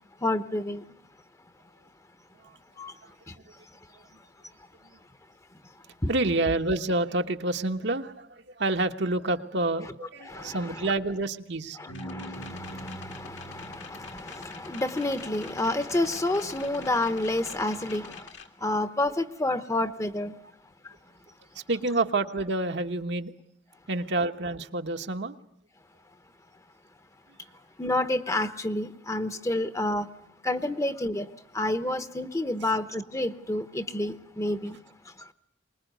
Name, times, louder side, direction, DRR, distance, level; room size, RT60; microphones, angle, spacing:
voice 1, 0.2-0.8 2.8-2.9 3.3-3.4 6.0-6.1 10.2-10.9 11.8-18.3 18.6-20.3 20.8-20.9 27.8-30.1 30.4-31.3 31.5-34.8 35.2-35.3, left 1 dB, 15° left, 0.9 m, -29 dB
voice 2, 6.1-8.3 8.6-11.8 21.5-23.3 23.9-25.4, right 2 dB, 65° right, 1.2 m, -28 dB
sound 1, 11.9-18.5, left 1 dB, 75° left, 2.2 m, -44 dB
24.0 x 20.5 x 9.3 m
head